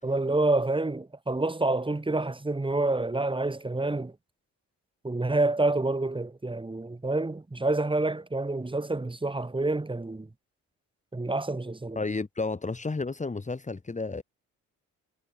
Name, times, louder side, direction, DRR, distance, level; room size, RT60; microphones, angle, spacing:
voice 1, 0.0-4.1 5.0-10.3 11.1-12.0, right 2 dB, 15° right, 7.9 m, -28 dB
voice 2, 12.0-14.2, left 3 dB, 25° left, 7.3 m, -32 dB
cardioid pair, 90°, 30 cm